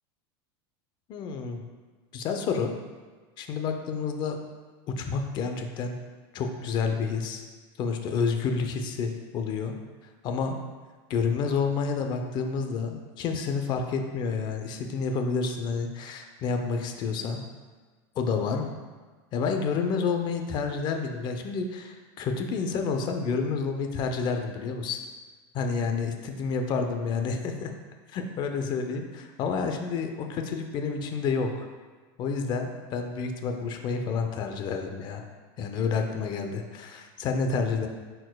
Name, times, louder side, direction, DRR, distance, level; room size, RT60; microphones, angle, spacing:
voice 1, 1.1-1.6 2.1-2.7 3.4-4.4 4.9-5.9 6.3-7.4 7.8-9.7 10.2-10.6 11.1-17.4 18.2-18.6 19.3-25.0 25.5-27.7 28.1-31.5 32.2-35.2 35.6-37.9, left 5 dB, 35° left, 5 dB, 0.6 m, -29 dB
10.5 x 4.4 x 2.3 m, 1.4 s
supercardioid pair, 155°, 13 cm